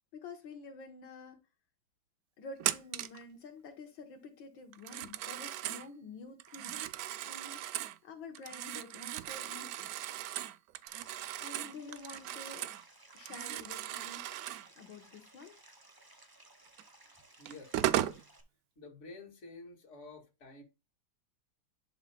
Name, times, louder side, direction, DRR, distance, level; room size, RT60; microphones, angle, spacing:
voice 1, 0.1-1.4 2.4-6.8 7.2-7.7 8.0-9.9 11.4-12.7 13.1-14.3 14.8-15.6, left 3 dB, 75° left, 1.8 m, -49 dB
Telephone, 2.6-3.2 4.7-5.9 6.4-8.0 8.4-12.8 13.1-14.7 16.8-16.9 17.5-18.2, right 13 dB, 85° right, 0.8 m, -37 dB
Stream, 10.9-18.4, right 2 dB, 20° right, 0.6 m, -60 dB
voice 2, 17.4-18.2 18.8-20.6, left 3 dB, 40° left, 2.1 m, -50 dB
11.0 x 5.8 x 2.2 m
omnidirectional pair, 2.1 m